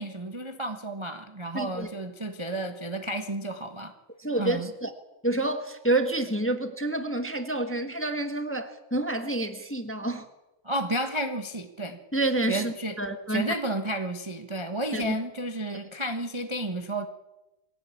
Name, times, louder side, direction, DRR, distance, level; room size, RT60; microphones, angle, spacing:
voice 1, 0.0-3.9 4.4-4.7 10.6-12.0 12.5-13.0 13.3-17.1, right 1 dB, 15° right, 6 dB, 1.0 m, -32 dB
voice 2, 1.5-1.9 4.2-4.9 5.2-10.3 12.1-13.5 14.9-15.1 15.7-15.8, right 2 dB, 5° left, 7 dB, 1.2 m, -28 dB
23.0 x 17.0 x 8.6 m, 1.0 s
omnidirectional pair, 2.4 m